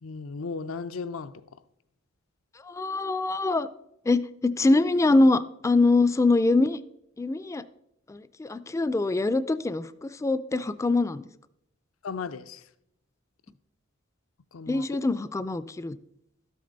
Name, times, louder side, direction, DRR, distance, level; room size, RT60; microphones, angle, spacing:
voice 1, 0.0-1.3 12.0-12.6 14.5-14.8, left 4 dB, 85° left, 0.6 m, -35 dB
voice 2, 2.6-3.7 4.1-6.8 7.2-7.6 8.1-11.3 14.7-16.0, left 2 dB, 15° left, 0.3 m, -24 dB
12.5 x 8.5 x 3.9 m
head